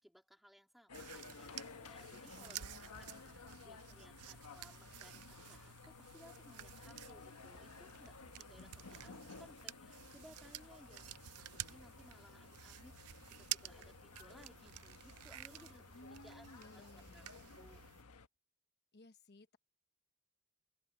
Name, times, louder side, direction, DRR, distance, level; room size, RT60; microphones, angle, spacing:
voice 1, 0.0-17.3 17.5-17.8, equal, ahead, 2.8 m, -63 dB
sound 1, 0.9-18.3, left 4 dB, 85° left, 1.3 m, -55 dB
sound 2, 0.9-18.0, right 13 dB, 85° right, 0.6 m, -51 dB
voice 2, 2.3-3.9 15.9-17.3 18.9-19.6, left 2 dB, 50° left, 1.0 m, -59 dB
open air
head